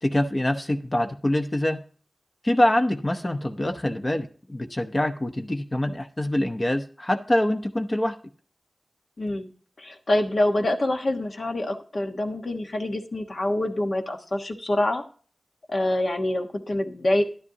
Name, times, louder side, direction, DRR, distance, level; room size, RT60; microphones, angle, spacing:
voice 1, 0.0-1.8 2.4-8.2, left 1 dB, 30° left, 6 dB, 0.8 m, -25 dB
voice 2, 9.2-9.5 9.8-15.0 15.7-17.2, left 1 dB, 60° left, 4 dB, 1.3 m, -26 dB
11.0 x 10.5 x 2.8 m, 0.41 s
wide cardioid pair, 60°, 0 cm